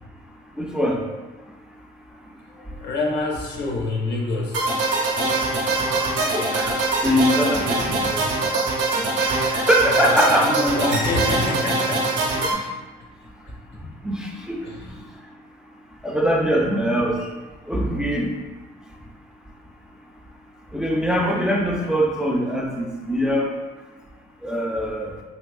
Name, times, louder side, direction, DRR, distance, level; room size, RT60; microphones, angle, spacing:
voice 1, 0.6-1.0 5.7-8.5 9.2-10.5 12.6-12.7 14.0-14.6 16.0-17.2 17.7-18.3 20.7-23.5 24.4-25.2, equal, 5° right, 0 dB, 0.4 m, -23 dB
voice 2, 2.5-4.6 9.8-12.5 13.5-13.6 14.6-14.9 21.8-21.9, left 2 dB, 60° left, -1 dB, 0.8 m, -26 dB
sound 1, 4.5-12.5, right 2 dB, 65° right, 0.7 m, -23 dB
3.4 x 2.9 x 2.3 m, 1.2 s
cardioid pair, 90°, 20 cm